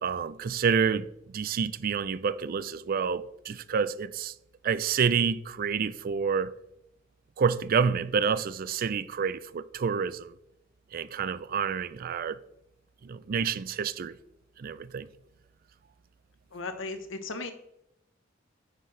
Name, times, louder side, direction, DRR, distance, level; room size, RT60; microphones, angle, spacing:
voice 1, 0.0-1.1 1.3-4.3 4.6-6.5 7.4-10.3 10.9-12.4 13.0-14.2 14.6-15.1, right 6 dB, 50° right, 0.4 m, -28 dB
voice 2, 16.5-17.5, left 3 dB, 85° left, 1.0 m, -36 dB
9.5 x 6.7 x 3.2 m
head